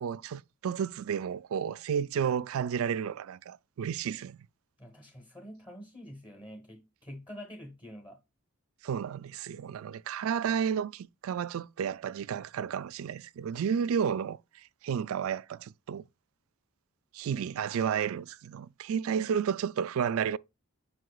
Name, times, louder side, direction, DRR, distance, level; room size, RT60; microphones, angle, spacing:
voice 1, 0.0-4.4 8.8-16.0 17.1-20.4, right 7 dB, 70° right, 0.3 m, -32 dB
voice 2, 4.8-8.2 17.2-17.4, equal, 20° left, 1.2 m, -47 dB
7.6 x 5.8 x 2.3 m
head